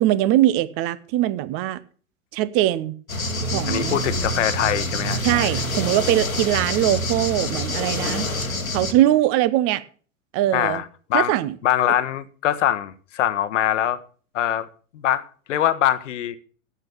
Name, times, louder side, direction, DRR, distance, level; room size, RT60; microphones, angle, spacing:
voice 1, 0.0-1.8 2.3-3.0 3.5-4.0 5.2-8.3 8.7-9.8 10.3-10.8 11.1-11.6, right 14 dB, 35° right, 0.8 m, -21 dB
sound 1, 3.1-8.9, left 1 dB, 90° left, 1.3 m, -26 dB
voice 2, 3.7-5.5 10.5-10.8 11.1-11.3 11.6-14.0 14.3-14.7 14.9-16.4, left 11 dB, 60° left, 1.0 m, -23 dB
8.8 x 8.4 x 7.0 m
figure-of-eight pair, 95°, 41 cm